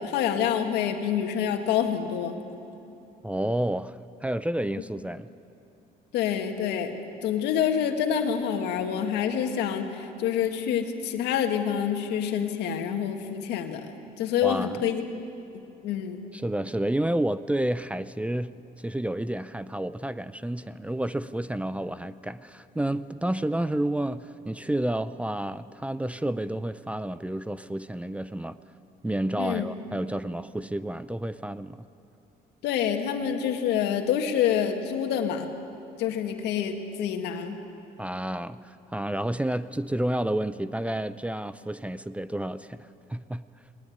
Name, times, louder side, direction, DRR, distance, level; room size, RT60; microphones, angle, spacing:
voice 1, 0.0-2.3 6.1-6.9 7.2-13.9 14.2-15.0 15.8-16.2 29.4-29.7 32.6-35.5 36.0-37.6, left 8 dB, 90° left, 5 dB, 2.0 m, -27 dB
voice 2, 3.2-5.3 14.4-14.8 16.3-28.6 29.0-31.8 38.0-43.4, right 1 dB, 10° right, 15 dB, 0.5 m, -30 dB
20.5 x 19.0 x 9.4 m, 2.8 s
cardioid pair, 110°, 17 cm